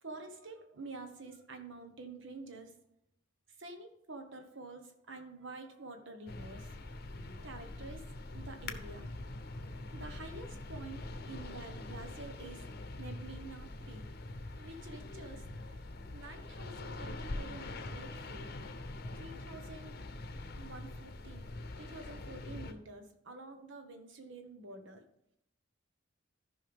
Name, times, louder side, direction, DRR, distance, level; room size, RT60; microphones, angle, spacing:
voice 1, 0.0-2.7 3.6-6.8 7.4-8.1 8.3-9.1 9.9-12.6 13.0-14.0 14.6-15.4 16.1-18.5 19.1-20.0 20.6-21.4 21.8-25.1, right 3 dB, 65° right, 6 dB, 1.3 m, -48 dB
sound 1, 6.3-22.7, left 2 dB, 50° left, 0.8 m, -44 dB
13.5 x 5.6 x 3.5 m, 0.79 s
head